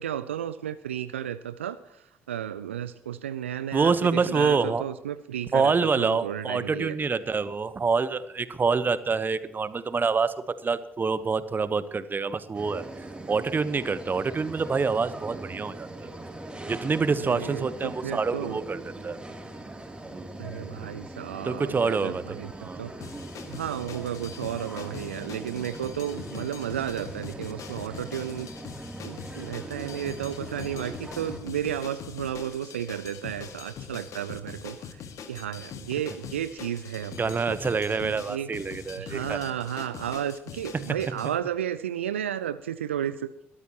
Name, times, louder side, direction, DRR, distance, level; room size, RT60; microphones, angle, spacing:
voice 1, 0.0-1.8 2.3-7.0 17.2-18.6 20.4-23.1 23.5-28.5 29.0-35.0 35.3-37.6 38.0-38.5 38.9-43.3, right 10 dB, 80° right, 13 dB, 0.4 m, -33 dB
voice 2, 3.7-4.8 5.5-12.8 13.3-16.1 16.7-19.2 20.1-20.3 21.4-22.8 37.1-39.5 40.7-40.8 41.2-41.3, right 4 dB, 30° right, 14 dB, 1.1 m, -26 dB
sound 1, 12.5-31.4, right 1 dB, 15° right, 3.1 m, -41 dB
sound 2, 23.0-41.3, left 7 dB, 55° left, 1.7 m, -43 dB
21.5 x 13.5 x 3.0 m, 0.84 s
figure-of-eight pair, 45°, 6 cm